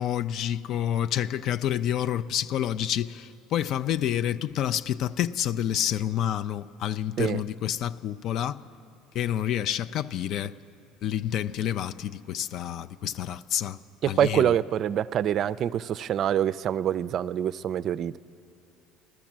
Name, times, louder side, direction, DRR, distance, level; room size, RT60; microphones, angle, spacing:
voice 1, 0.0-8.6 9.1-10.5 11.0-13.8 14.1-14.5, left 10 dB, 60° left, 0.4 m, -28 dB
voice 2, 14.0-18.2, right 10 dB, 50° right, 0.4 m, -25 dB
15.5 x 12.5 x 7.4 m
supercardioid pair, 80°, 0 cm